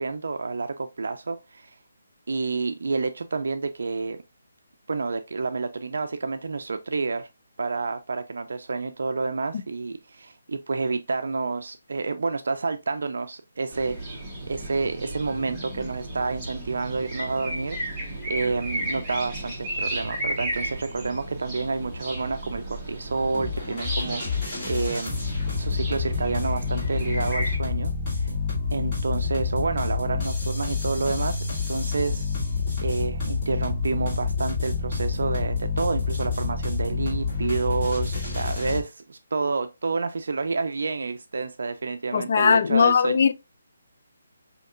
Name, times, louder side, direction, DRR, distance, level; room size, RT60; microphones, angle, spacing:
voice 1, 0.0-1.8 2.3-4.2 4.9-7.3 7.6-14.2 14.5-25.2 25.6-27.9 28.2-28.3 28.7-32.2 32.8-43.2, right 4 dB, 70° right, 0.4 m, -29 dB
sound 1, 13.7-27.6, right 1 dB, 10° right, 1.0 m, -34 dB
sound 2, 23.3-38.8, left 4 dB, 20° left, 2.3 m, -28 dB
voice 2, 42.1-43.3, left 6 dB, 45° left, 0.4 m, -19 dB
5.2 x 2.8 x 2.4 m
hypercardioid pair, 170°, 0 cm